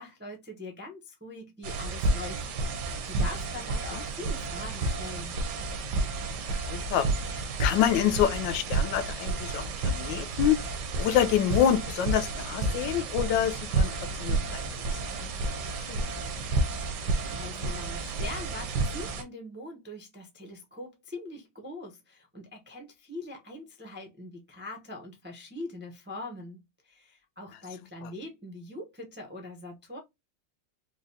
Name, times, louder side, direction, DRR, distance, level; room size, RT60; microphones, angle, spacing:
voice 1, 0.0-2.4 2.7-5.4 16.7-30.0, left 2 dB, 15° right, 0.3 m, -42 dB
sound 1, 1.6-19.2, right 3 dB, 70° right, 1.3 m, -31 dB
voice 2, 6.5-10.6 11.0-13.9 14.2-15.0 15.9-16.0 28.0-28.1, left 10 dB, 85° left, 1.3 m, -27 dB
4.9 x 2.2 x 2.7 m
omnidirectional pair, 2.0 m